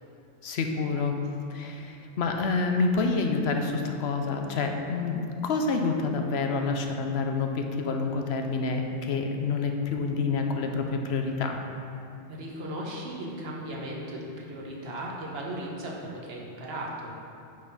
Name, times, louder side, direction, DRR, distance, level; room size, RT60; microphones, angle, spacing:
voice 1, 0.4-1.1 1.5-11.6, left 4 dB, 65° left, 4 dB, 0.9 m, -28 dB
voice 2, 12.3-17.2, right 1 dB, 55° right, -3 dB, 1.3 m, -36 dB
8.9 x 4.2 x 5.5 m, 2.7 s
omnidirectional pair, 1.2 m